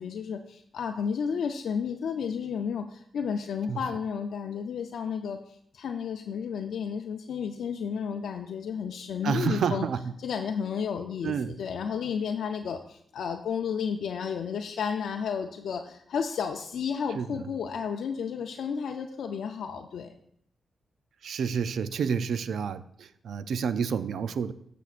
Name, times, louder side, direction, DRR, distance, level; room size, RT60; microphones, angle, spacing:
voice 1, 0.0-9.9 10.2-20.1, left 6 dB, 80° left, 5 dB, 0.5 m, -32 dB
voice 2, 9.2-10.1 11.2-11.5 17.2-17.3 21.2-24.5, right 6 dB, 75° right, 13 dB, 0.4 m, -29 dB
13.0 x 6.9 x 2.5 m, 0.69 s
cardioid pair, 85°, 0 cm